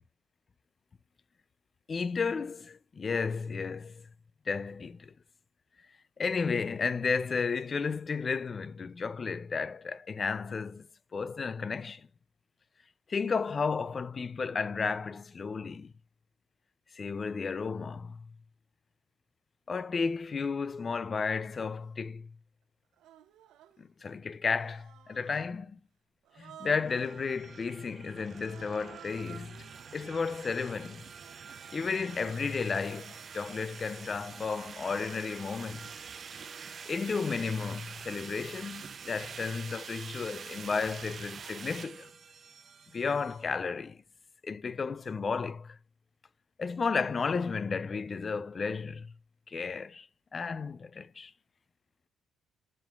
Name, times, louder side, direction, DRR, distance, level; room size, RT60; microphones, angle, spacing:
voice 1, 1.9-4.1 4.5-5.1 6.2-10.9 11.1-12.1 13.1-15.9 16.9-18.3 19.7-22.3 23.8-25.8 26.4-29.6 29.9-31.0 31.7-35.9 36.9-42.1 42.9-44.0 44.4-45.8 46.6-49.1 49.5-50.1 50.3-51.3, left 5 dB, 40° left, 0.4 m, -33 dB
Human voice, 21.8-22.0 22.9-23.8 24.4-25.5 26.2-27.4 28.3-33.5, right 11 dB, 85° right, 0.7 m, -54 dB
sound 1, 26.7-43.5, right 6 dB, 50° right, 0.6 m, -46 dB
9.8 x 7.6 x 2.4 m
cardioid pair, 90°, 0 cm